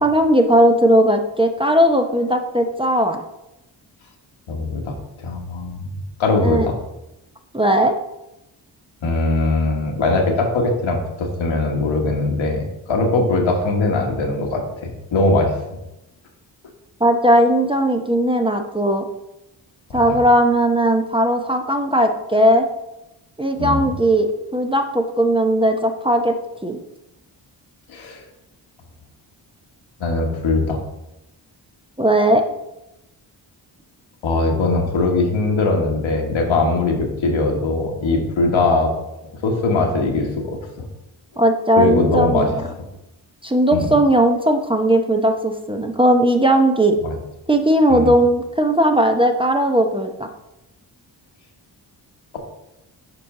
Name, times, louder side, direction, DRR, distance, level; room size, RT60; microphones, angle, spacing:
voice 1, 0.0-3.2 6.4-6.7 7.5-8.0 17.0-19.0 19.9-22.7 23.4-26.3 26.6-26.8 32.0-32.4 41.4-42.4 43.4-47.0 47.5-50.3, right 1 dB, 10° right, 5 dB, 0.7 m, -17 dB
voice 2, 4.5-4.9 5.2-5.9 6.2-6.7 9.0-15.5 19.9-20.2 23.6-23.9 27.9-28.2 30.0-30.8 34.2-38.9 39.4-40.9 41.8-42.5 43.7-43.9 47.0-47.1 47.9-48.1, left 3 dB, 70° left, 1 dB, 1.5 m, -20 dB
6.8 x 4.5 x 3.7 m, 0.90 s
supercardioid pair, 45°, 48 cm